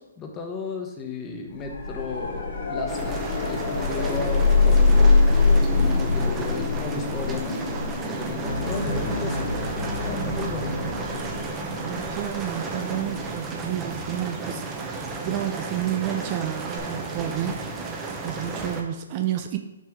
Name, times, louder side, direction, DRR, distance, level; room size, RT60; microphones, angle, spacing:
voice 1, 0.0-7.6 8.1-9.5 10.0-10.9, left 4 dB, 20° left, 2 dB, 1.1 m, -34 dB
sound 1, 1.5-14.4 16.8-16.9, left 3 dB, 50° left, 1.8 m, -24 dB
sound 2, 2.9-18.8, right 3 dB, 20° right, 0.9 m, -33 dB
sound 3, 8.5-12.1, left 2 dB, 75° left, 0.9 m, -32 dB
voice 2, 8.8-9.2 11.8-19.6, right 11 dB, 35° right, 6 dB, 0.5 m, -31 dB
6.3 x 5.5 x 3.6 m, 1.0 s
hypercardioid pair, 135°, 0 cm